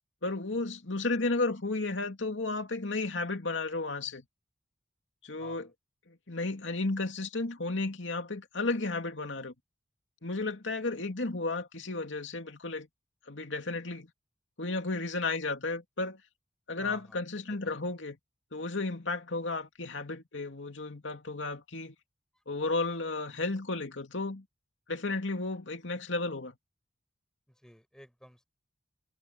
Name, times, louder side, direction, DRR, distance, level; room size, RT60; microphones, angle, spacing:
voice 1, 0.2-4.2 5.2-5.7 6.1-9.5 10.2-12.9 13.3-14.1 14.6-16.2 16.7-18.2 18.5-21.9 22.5-24.4 24.9-26.6, left 3 dB, 85° left, 2.5 m, -33 dB
voice 2, 5.4-5.7 11.0-11.1 16.8-17.2 17.5-17.8 22.3-22.4 27.5-28.4, equal, 5° left, 5.0 m, -53 dB
head